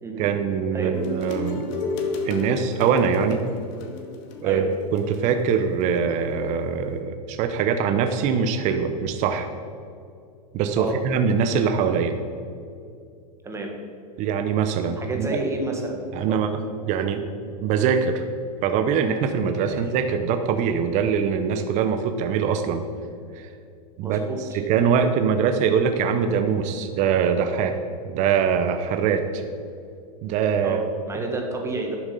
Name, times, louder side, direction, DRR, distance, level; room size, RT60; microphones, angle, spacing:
voice 1, 0.2-1.6 2.2-3.4 4.4-9.5 10.5-12.1 14.2-15.4 16.1-16.6 16.9-17.2 17.6-18.2 18.6-22.8 23.3-23.5 24.0-24.2 24.5-27.8 28.0-29.4 30.2-30.8, right 6 dB, 35° right, 7 dB, 0.8 m, -23 dB
sound 1, 0.9-5.9, left 3 dB, 50° left, 1.8 m, -32 dB
voice 2, 15.0-16.0 16.3-16.4 19.7-19.8 24.0-24.6 30.6-30.8 31.1-32.0, right 2 dB, 15° right, 2 dB, 1.6 m, -30 dB
11.5 x 7.1 x 5.3 m, 2.4 s
hypercardioid pair, 130°, 20 cm